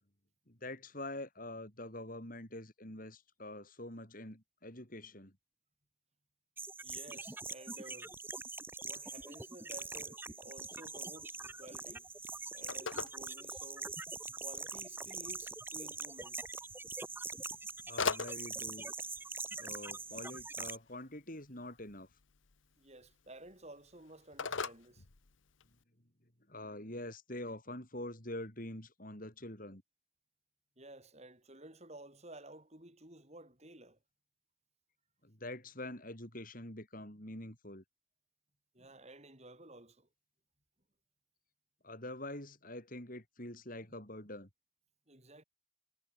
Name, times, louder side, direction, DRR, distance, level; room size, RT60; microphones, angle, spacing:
voice 1, 0.5-5.4 17.9-18.9 19.6-22.1 26.5-29.8 35.2-37.8 41.8-44.5, left 1 dB, 45° left, 6.6 m, -45 dB
sound 1, 6.6-20.8, right 3 dB, 10° right, 0.9 m, -43 dB
voice 2, 6.8-8.1 8.8-12.1 12.5-13.9 14.4-16.4 22.8-25.0 30.8-34.0 38.7-40.1 45.1-45.4, right 1 dB, 35° right, 5.9 m, -53 dB
Telephone, 11.3-25.8, left 5 dB, 75° left, 1.3 m, -45 dB
head